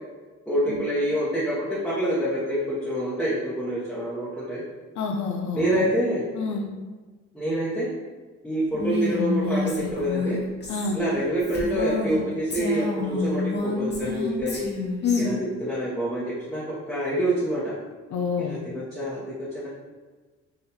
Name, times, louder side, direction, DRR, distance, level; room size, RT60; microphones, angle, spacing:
voice 1, 0.5-4.6 5.5-6.2 7.3-7.9 8.4-10.4 10.9-14.7 15.2-17.7 18.4-19.7, equal, ahead, -10 dB, 1.1 m, -26 dB
voice 2, 4.9-5.9 6.4-6.7 10.7-11.0 15.0-15.3 18.1-18.6, left 5 dB, 70° left, 3 dB, 0.7 m, -27 dB
Female speech woman speaking, 8.7-12.2 12.5-15.2, left 2 dB, 35° left, 1.1 m, -29 dB
4.3 x 2.6 x 4.0 m, 1.3 s
cardioid pair, 90°, 30 cm